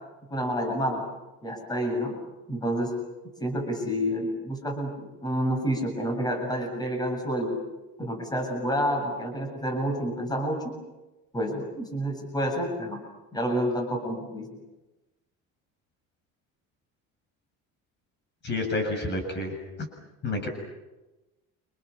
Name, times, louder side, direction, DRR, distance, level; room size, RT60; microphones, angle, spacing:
voice 1, 0.3-1.0 1.4-2.2 2.5-2.9 3.4-7.5 8.0-10.7 11.3-13.0 13.3-14.5, equal, 15° left, 2 dB, 7.6 m, -29 dB
voice 2, 18.4-19.6 20.2-20.5, left 2 dB, 35° left, 4 dB, 7.4 m, -29 dB
30.0 x 27.5 x 7.2 m, 1.0 s
cardioid pair, 140°, 30 cm